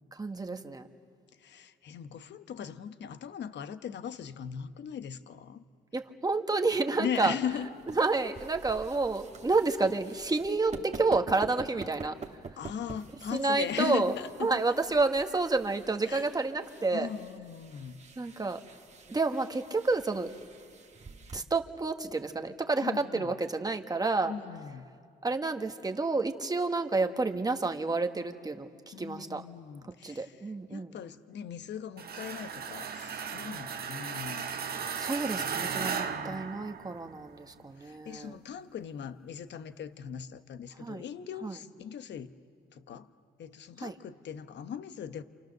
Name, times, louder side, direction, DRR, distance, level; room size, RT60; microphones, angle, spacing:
voice 1, 0.1-0.9 5.9-7.3 8.0-12.1 13.3-14.1 14.4-17.1 18.2-18.6 19.1-20.3 21.3-24.3 25.2-29.4 30.0-30.9 34.9-38.4 40.8-41.0 41.4-41.6 43.8-43.9, right 3 dB, 20° right, 5 dB, 1.4 m, -29 dB
voice 2, 1.4-5.6 7.0-7.7 12.6-14.6 16.1-16.3 16.9-18.0 22.8-23.3 24.3-24.9 28.9-30.3 30.7-34.7 35.8-36.6 37.8-42.3 42.7-43.1 43.4-45.2, left 8 dB, 60° left, 11 dB, 1.0 m, -39 dB
sound 1, 7.4-21.4, right 4 dB, 35° right, 1.6 m, -48 dB
sound 2, 32.0-37.2, right 6 dB, 50° right, 1.3 m, -36 dB
28.5 x 27.5 x 6.6 m, 2.2 s
cardioid pair, 90°, 20 cm